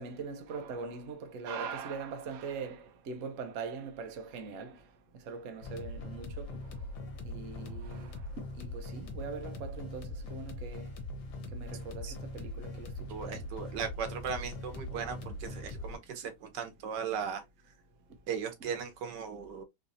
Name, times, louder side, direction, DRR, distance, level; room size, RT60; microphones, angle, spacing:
voice 1, 0.0-4.8 5.3-6.5 7.2-8.2 8.6-10.9 11.5-12.9 13.3-13.4, right 5 dB, 60° right, 0.9 m, -41 dB
sound 1, 5.6-16.0, left 2 dB, 80° left, 1.5 m, -41 dB
voice 2, 13.1-17.4 18.3-19.6, right 7 dB, 85° right, 1.5 m, -37 dB
3.9 x 2.8 x 2.5 m
omnidirectional pair, 1.8 m